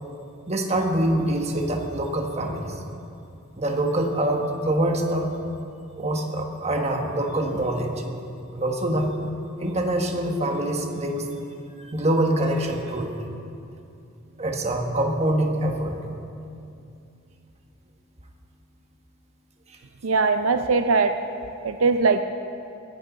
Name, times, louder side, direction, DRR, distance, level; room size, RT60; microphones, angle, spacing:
voice 1, 0.5-2.7 3.6-5.3 6.0-8.0 8.5-9.1 9.6-11.3 11.8-13.2 14.4-16.0, right 1 dB, 30° right, 2 dB, 1.4 m, -25 dB
voice 2, 20.0-21.1 21.6-22.2, right 4 dB, 80° right, 8 dB, 0.5 m, -20 dB
23.0 x 11.0 x 4.0 m, 2.6 s
head